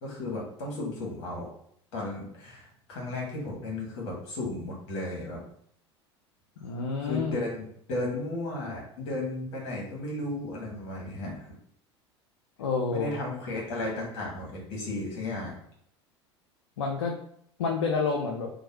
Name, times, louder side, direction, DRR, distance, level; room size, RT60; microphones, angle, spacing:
voice 1, 0.0-1.5 1.9-5.4 7.0-11.5 12.9-15.6, left 2 dB, 55° left, -3 dB, 1.2 m, -34 dB
voice 2, 6.6-7.4 12.6-13.2 16.8-17.1 17.6-18.5, left 4 dB, 70° left, 1 dB, 0.4 m, -29 dB
3.0 x 2.1 x 2.8 m, 0.66 s
figure-of-eight pair, 70°, 15 cm